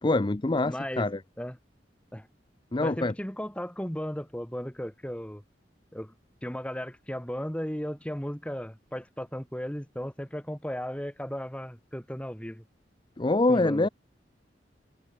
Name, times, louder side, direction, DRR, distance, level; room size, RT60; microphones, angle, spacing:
voice 1, 0.0-1.2 2.7-3.1 13.2-13.9, left 2 dB, 25° left, 0.6 m, -25 dB
voice 2, 0.6-1.1 1.4-1.6 2.1-2.3 2.8-5.4 5.9-6.1 6.4-12.6 13.5-13.9, equal, 5° left, 2.0 m, -35 dB
head